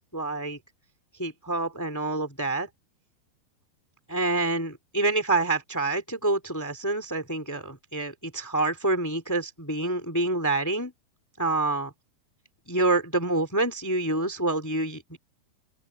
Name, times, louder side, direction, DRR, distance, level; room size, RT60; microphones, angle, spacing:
voice 1, 0.1-0.6 1.2-2.7 4.1-10.9 11.4-11.9 12.7-15.2, right 2 dB, 5° left, 1.6 m, -27 dB
omnidirectional pair, 4.7 m